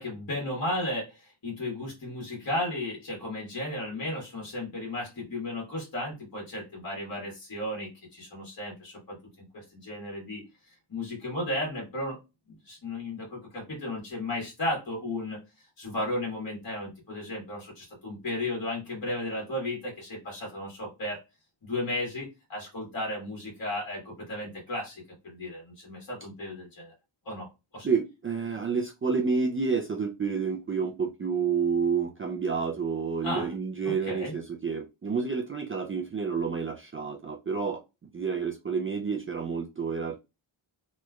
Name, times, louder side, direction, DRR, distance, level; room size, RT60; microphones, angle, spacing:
voice 1, 0.0-12.2 12.6-21.2 21.6-26.9 27.2-27.9 33.2-33.5 33.8-34.3, left 1 dB, 45° left, 1.6 m, -34 dB
voice 2, 27.8-37.8 38.1-40.2, right 5 dB, 30° right, 0.4 m, -29 dB
3.1 x 3.1 x 2.3 m
wide cardioid pair, 125°, 49 cm